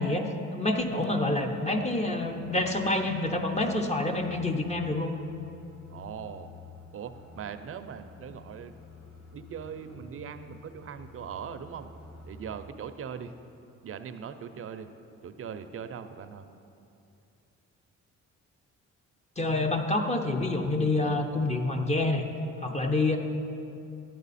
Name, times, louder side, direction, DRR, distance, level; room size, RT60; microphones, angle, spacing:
voice 1, 0.0-5.1 19.4-22.2 22.6-23.2, left 2 dB, 20° left, 4 dB, 0.8 m, -27 dB
sound 1, 1.7-12.7, left 3 dB, 50° left, 1.8 m, -50 dB
voice 2, 5.9-6.5 6.9-8.7 9.3-11.9 12.3-13.3 13.8-14.9 15.2-16.5, right 7 dB, 45° right, 10 dB, 0.6 m, -40 dB
10.5 x 9.0 x 4.1 m, 2.7 s
cardioid pair, 90°, 30 cm